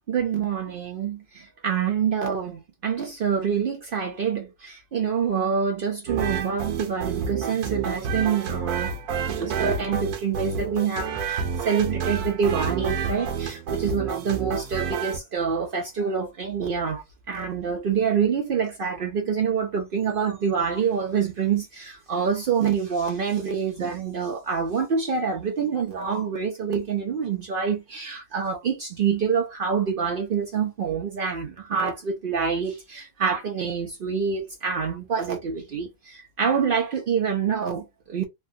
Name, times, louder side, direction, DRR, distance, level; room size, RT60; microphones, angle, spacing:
voice 1, 0.1-9.0 9.3-38.2, right 6 dB, 70° right, 0.5 m, -26 dB
sound 1, 6.1-15.2, right 6 dB, 90° right, 1.2 m, -29 dB
3.3 x 2.2 x 2.6 m
omnidirectional pair, 1.6 m